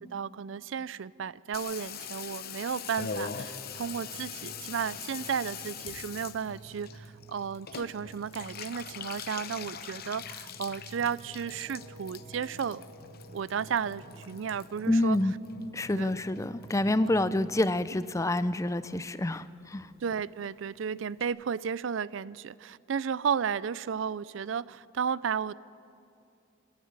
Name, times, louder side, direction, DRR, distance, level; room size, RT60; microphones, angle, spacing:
voice 1, 0.0-12.8 13.3-15.2 15.9-16.1 20.0-25.5, right 7 dB, 65° right, 0.4 m, -33 dB
Water tap faucet / Bathtub (filling or washing), 1.5-16.1 16.4-17.1 17.4-17.5 17.7-17.8 18.0-18.4 18.7-18.8 19.0-19.1 19.4-19.5 19.7-19.8 20.0-20.1 20.4-20.5 20.8-20.9 21.2-21.3, left 7 dB, 50° left, 0.8 m, -42 dB
sound 1, 3.7-17.3, right 2 dB, 45° right, 5.8 m, -51 dB
voice 2, 14.9-15.3 15.7-19.9, left 1 dB, 15° left, 0.5 m, -27 dB
27.5 x 12.0 x 8.7 m
head